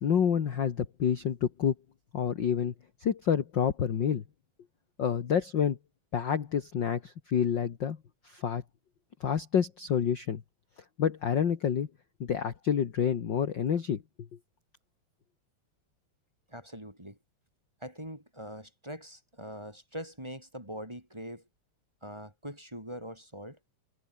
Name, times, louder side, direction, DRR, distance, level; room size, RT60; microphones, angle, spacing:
voice 1, 0.0-1.7 2.1-2.7 3.0-4.2 5.0-5.8 6.1-8.0 8.3-8.6 9.2-10.4 11.0-11.9 12.2-14.0, left 8 dB, 45° left, 1.9 m, -28 dB
voice 2, 16.5-17.2 17.8-21.5 22.0-23.6, equal, 10° right, 3.8 m, -42 dB
omnidirectional pair, 3.4 m